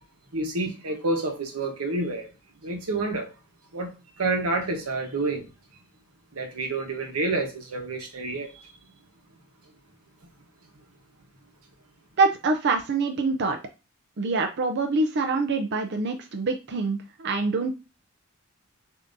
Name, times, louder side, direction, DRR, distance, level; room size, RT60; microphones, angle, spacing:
voice 1, 0.3-2.3 2.6-3.3 3.7-3.9 4.2-5.5 6.3-8.6, right 2 dB, 85° right, 1.1 m, -28 dB
voice 2, 12.2-13.6 14.2-17.7, right 3 dB, 50° right, 0.5 m, -25 dB
6.8 x 2.7 x 2.6 m
head